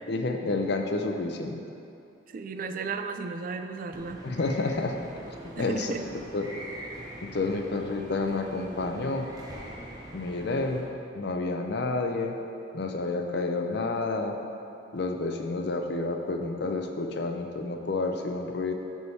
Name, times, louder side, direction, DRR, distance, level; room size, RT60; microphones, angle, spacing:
voice 1, 0.1-1.6 4.2-5.0 5.6-5.9 6.3-6.5 7.2-9.3 10.1-10.9 11.1-12.3 12.7-14.4 14.9-18.7, left 3 dB, 65° left, 4 dB, 0.6 m, -29 dB
voice 2, 2.3-4.2 5.6-6.0, right 4 dB, 50° right, 8 dB, 0.4 m, -34 dB
sound 1, 3.9-10.8, right 1 dB, 20° right, 0.8 m, -43 dB
10.5 x 3.5 x 4.1 m, 2.7 s
head